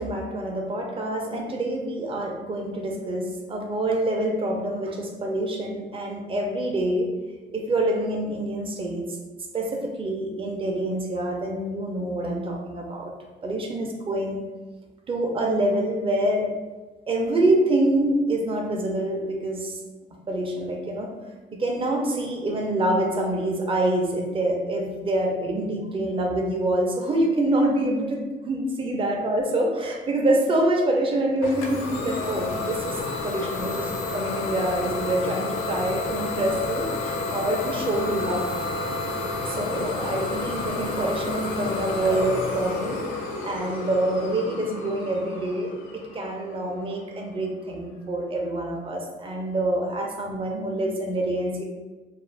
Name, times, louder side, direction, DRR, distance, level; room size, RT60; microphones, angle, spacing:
voice 1, 0.0-7.1 7.5-9.2 9.5-13.1 13.4-14.5 15.1-16.5 17.1-19.8 20.3-21.2 21.5-38.5 39.4-43.0 43.4-51.6, right 1 dB, 25° right, 1 dB, 0.5 m, -26 dB
Idling / Domestic sounds home sounds, 31.4-47.0, left 3 dB, 80° left, 0.5 m, -30 dB
2.5 x 2.1 x 3.2 m, 1.3 s
cardioid pair, 90°, 20 cm